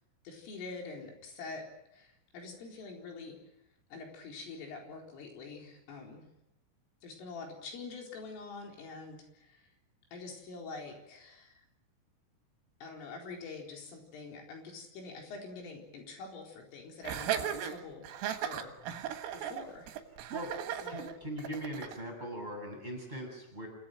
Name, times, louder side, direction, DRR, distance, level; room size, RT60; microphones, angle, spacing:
voice 1, 0.2-1.7 1.9-3.4 3.9-6.2 7.0-9.6 10.1-11.6 12.8-18.0 18.4-18.8 19.3-19.9 20.8-21.2, left 4 dB, 75° left, 1 dB, 6.7 m, -45 dB
Laughter, 17.0-22.0, right 10 dB, 90° right, 4.3 m, -36 dB
voice 2, 20.9-23.7, equal, 10° right, 1 dB, 7.3 m, -40 dB
29.0 x 17.0 x 9.2 m, 0.86 s
omnidirectional pair, 5.8 m